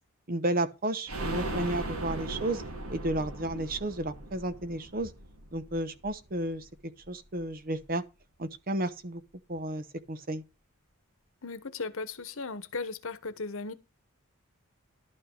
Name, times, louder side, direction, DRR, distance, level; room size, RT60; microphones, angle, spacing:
voice 1, 0.3-2.6 2.9-5.1 5.5-6.7 7.1-8.0 8.4-9.2 9.5-10.4, right 1 dB, 45° right, 1.0 m, -32 dB
sound 1, 1.1-6.7 7.0-7.1 7.4-7.5, right 2 dB, 75° right, 2.4 m, -38 dB
voice 2, 11.4-13.7, left 4 dB, 65° left, 1.2 m, -37 dB
12.0 x 5.4 x 6.5 m
head